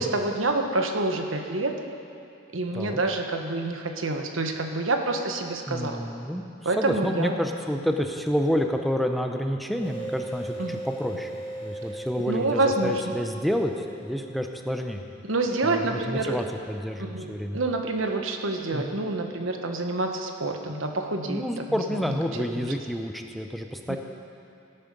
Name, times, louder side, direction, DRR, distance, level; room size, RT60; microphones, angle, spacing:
voice 1, 0.0-1.7 2.5-6.0 6.6-7.4 10.6-10.8 12.3-13.2 15.2-16.4 17.0-21.4 22.5-22.7 23.9-24.0, right 2 dB, 85° right, 4 dB, 1.2 m, -27 dB
voice 2, 5.7-6.4 6.7-15.0 15.6-17.6 18.7-18.9 21.3-24.0, equal, ahead, 4 dB, 0.6 m, -29 dB
sound 1, 9.8-15.1, right 1 dB, 35° left, 3.4 m, -38 dB
17.5 x 8.9 x 5.3 m, 2.7 s
head